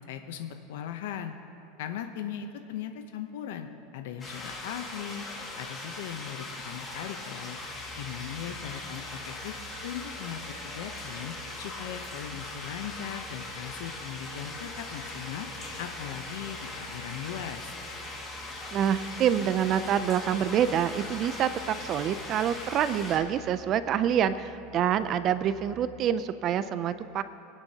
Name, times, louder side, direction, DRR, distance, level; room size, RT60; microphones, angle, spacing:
voice 1, 0.1-1.3 1.8-3.7 3.9-5.2 5.6-7.6 8.0-9.5 9.8-15.5 15.8-17.7, left 9 dB, 80° left, 6 dB, 0.7 m, -38 dB
sound 1, 4.2-23.2, left 2 dB, 20° left, 2.0 m, -40 dB
sound 2, 7.6-26.1, right 3 dB, 80° right, 2.0 m, -51 dB
voice 2, 18.7-27.2, right 9 dB, 35° right, 13 dB, 0.4 m, -26 dB
25.0 x 9.7 x 2.8 m, 2.7 s
supercardioid pair, 150°, 0 cm